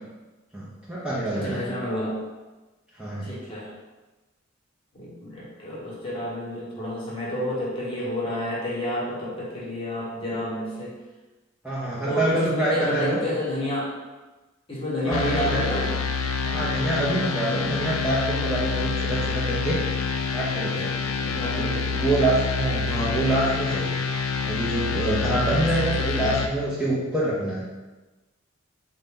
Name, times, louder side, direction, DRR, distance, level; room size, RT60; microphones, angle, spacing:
voice 1, 0.5-1.6 2.9-3.3 11.6-13.2 15.0-15.7 16.4-20.1 20.3-20.9 21.5-24.0 24.4-27.6, right 1 dB, 5° right, -9 dB, 0.5 m, -26 dB
voice 2, 1.3-2.2 3.2-3.7 4.9-10.9 12.0-13.9 14.7-15.9 20.7-22.0 22.7-23.0, left 1 dB, 25° left, -6 dB, 1.0 m, -30 dB
sound 1, 15.1-26.5, left 5 dB, 75° left, 0.3 m, -27 dB
3.8 x 2.2 x 3.7 m, 1.2 s
head